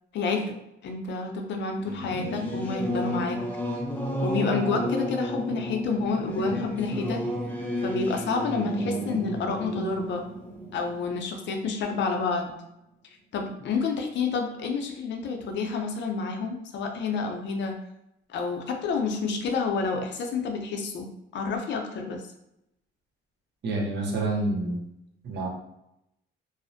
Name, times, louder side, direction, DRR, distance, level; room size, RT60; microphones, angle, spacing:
voice 1, 0.1-0.6 0.8-3.4 4.2-7.2 7.8-10.2 10.7-12.6 13.3-17.8 18.3-21.1 21.3-22.2, left 4 dB, 65° left, 3 dB, 0.5 m, -29 dB
Singing / Musical instrument, 1.8-11.9, equal, 10° left, 0.5 m, -32 dB
voice 2, 23.6-24.8 25.2-25.5, right 2 dB, 60° right, -1 dB, 0.7 m, -28 dB
2.4 x 2.0 x 2.5 m, 0.84 s
cardioid pair, 90°, 20 cm